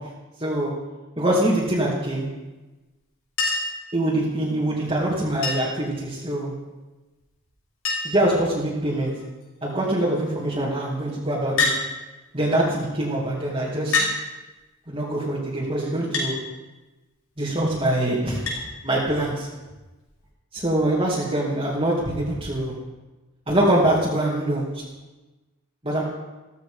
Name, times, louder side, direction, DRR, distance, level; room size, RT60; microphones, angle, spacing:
voice 1, 0.4-0.7 1.2-2.3 3.9-6.5 8.0-9.1 9.6-11.7 12.3-14.0 14.9-16.4 17.4-18.4 18.8-19.5 20.5-22.7 23.5-24.6 25.8-26.0, right 1 dB, 25° right, -6 dB, 2.5 m, -23 dB
Chink clink, 3.4-3.8 5.4-5.8 7.2-7.3 7.5-7.6 7.9-8.3 9.1-9.4 11.6-11.8 12.9-13.0 13.9-14.2 16.1-16.3 18.5-18.6 20.1-20.2, left 3 dB, 85° left, 6.1 m, -25 dB
15.5 x 15.0 x 5.1 m, 1.2 s
head